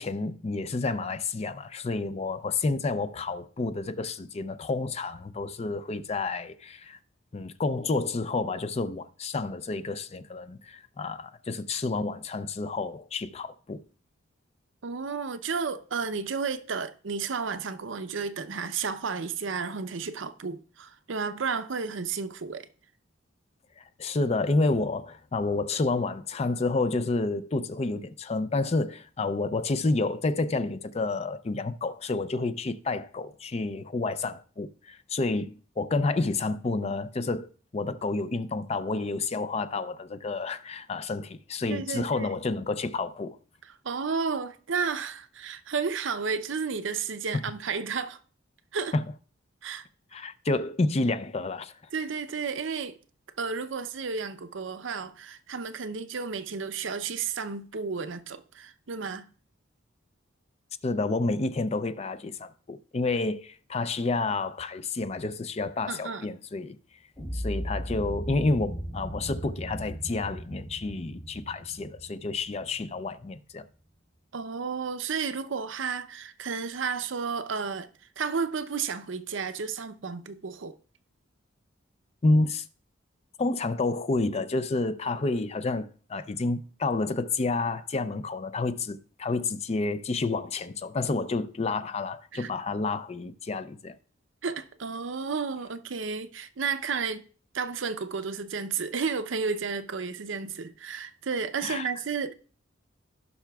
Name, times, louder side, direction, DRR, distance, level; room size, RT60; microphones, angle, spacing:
voice 1, 0.0-7.0 7.3-13.8 23.8-43.4 47.3-47.4 48.9-49.1 50.1-51.7 60.8-66.8 67.3-73.7 82.2-82.6 83.4-93.9 101.6-101.9, left 3 dB, 30° left, 0.4 m, -29 dB
voice 2, 14.8-22.7 41.7-42.4 43.8-48.2 48.7-48.9 49.6-49.8 50.2-50.3 51.9-53.0 53.4-59.3 65.9-66.3 74.3-77.9 78.2-80.7 92.3-92.5 94.4-97.2 97.5-102.3, right 5 dB, 65° right, 0.6 m, -32 dB
sound 1, 67.1-73.2, equal, 15° left, 0.9 m, -37 dB
16.0 x 5.8 x 2.3 m
head